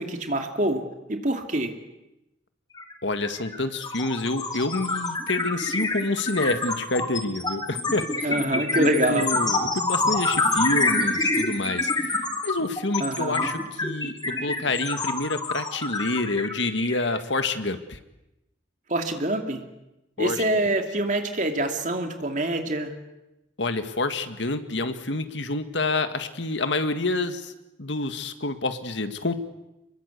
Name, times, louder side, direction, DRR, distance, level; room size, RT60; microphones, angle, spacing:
voice 1, 0.0-1.7 8.2-9.3 13.0-13.5 18.9-19.6 20.2-22.9, right 1 dB, 40° right, 5 dB, 2.6 m, -26 dB
sound 1, 2.8-2.9 3.2-17.6, left 3 dB, 20° left, 2.7 m, -26 dB
voice 2, 3.0-8.3 8.6-12.2 12.4-18.0 20.2-20.4 23.6-27.5 27.8-29.4, left 2 dB, 75° left, 9 dB, 1.9 m, -28 dB
26.0 x 22.5 x 8.4 m, 0.93 s
head